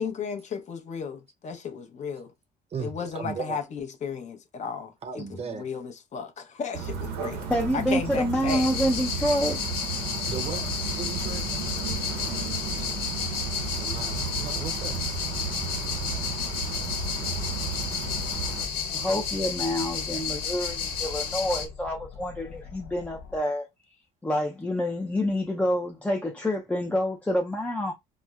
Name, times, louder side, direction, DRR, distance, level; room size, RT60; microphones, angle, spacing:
voice 1, 0.0-2.3 2.8-5.2 5.6-7.5 7.7-8.7, left 6 dB, 45° left, 0.8 m, -34 dB
voice 2, 2.7-3.6 5.0-5.7 10.3-11.5 13.8-15.0, right 5 dB, 35° right, 0.6 m, -36 dB
sound 1, 6.7-18.7, right 5 dB, 75° right, 0.7 m, -34 dB
voice 3, 7.5-9.6 18.9-23.7 24.2-27.9, equal, 10° left, 0.5 m, -27 dB
sound 2, 8.5-21.7, left 6 dB, 70° left, 1.4 m, -32 dB
sound 3, 11.2-23.4, left 5 dB, 85° left, 0.8 m, -45 dB
4.1 x 2.1 x 2.3 m
cardioid pair, 110°, 17 cm